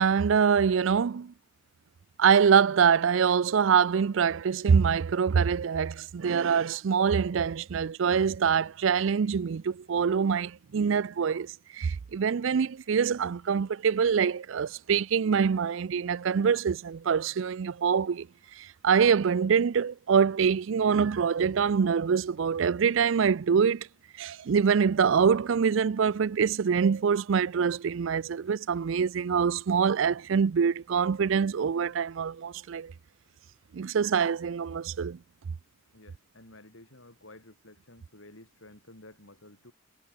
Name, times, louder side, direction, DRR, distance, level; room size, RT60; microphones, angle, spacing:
voice 1, 0.0-1.3 2.2-18.3 18.6-23.9 24.2-32.9 33.7-35.2, right 6 dB, 70° right, 0.4 m, -25 dB
voice 2, 35.9-39.7, left 2 dB, 75° left, 5.6 m, -52 dB
head